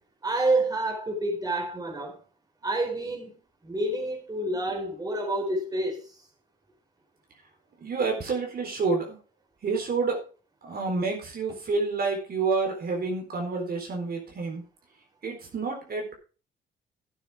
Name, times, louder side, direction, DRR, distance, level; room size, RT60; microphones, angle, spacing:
voice 1, 0.2-2.2 2.6-6.2, right 2 dB, 20° right, 4.5 m, -28 dB
voice 2, 7.8-9.2 9.6-10.2 10.6-14.6 15.2-16.2, right 4 dB, 50° right, 4.0 m, -29 dB
12.5 x 9.3 x 3.7 m
cardioid pair, 90°, 20 cm